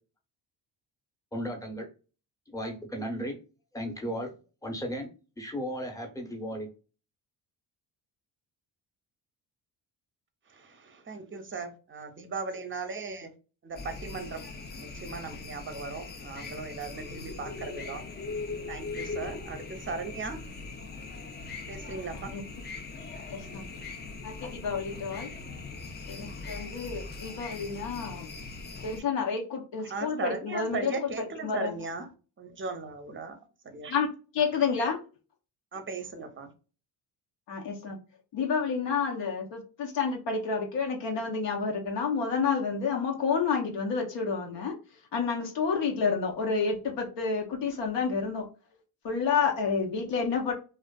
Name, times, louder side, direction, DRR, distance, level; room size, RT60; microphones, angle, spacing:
voice 1, 1.3-1.9 2.5-3.4 3.7-4.3 4.6-5.1 5.4-6.7, equal, 5° left, 0.8 m, -35 dB
voice 2, 10.5-13.3 13.6-14.4 14.7-18.0 18.7-20.4 21.7-22.3 29.8-32.1 32.4-33.4 33.6-34.0 34.7-34.9 35.7-36.5, right 4 dB, 25° right, 0.6 m, -37 dB
sound 1, 13.8-29.0, left 3 dB, 25° left, 0.4 m, -40 dB
voice 3, 23.3-23.7 24.2-25.3 26.1-28.3 28.8-30.9 31.4-31.7 33.9-34.1 34.3-35.0 37.5-38.0 38.3-44.7 45.1-48.5 49.0-50.5, left 5 dB, 60° left, 0.7 m, -29 dB
2.4 x 2.3 x 2.2 m
supercardioid pair, 60°, 49 cm